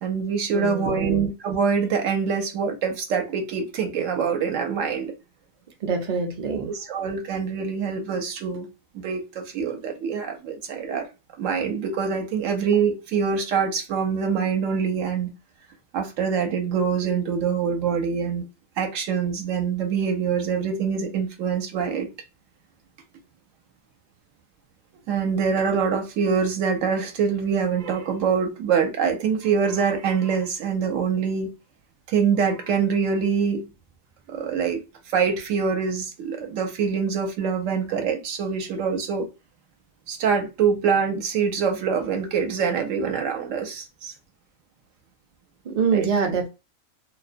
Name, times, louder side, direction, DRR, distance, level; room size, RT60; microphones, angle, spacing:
voice 1, 0.0-5.1 6.7-8.7 8.9-11.0 11.4-15.3 15.9-18.4 18.8-22.1 25.1-31.5 32.1-33.7 34.3-39.3 40.1-44.1 45.9-46.1, right 6 dB, 70° right, 0.9 m, -25 dB
voice 2, 0.5-1.2 5.8-6.7 45.6-46.5, right 5 dB, 55° right, 0.4 m, -25 dB
2.4 x 2.1 x 2.5 m
omnidirectional pair, 1.4 m